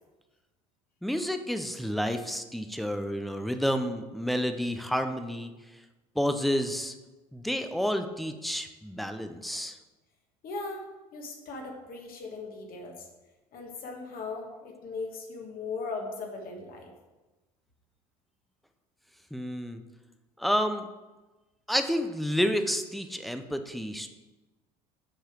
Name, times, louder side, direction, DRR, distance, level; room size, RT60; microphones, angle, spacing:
voice 1, 1.0-5.5 6.2-6.9 7.3-9.8 19.3-19.8 20.4-20.9 21.7-24.1, equal, ahead, 7 dB, 0.6 m, -30 dB
voice 2, 10.4-10.8 11.1-13.1 13.5-16.9, left 3 dB, 45° left, 1 dB, 1.5 m, -38 dB
6.6 x 4.8 x 4.6 m, 1.1 s
hypercardioid pair, 70°, 20 cm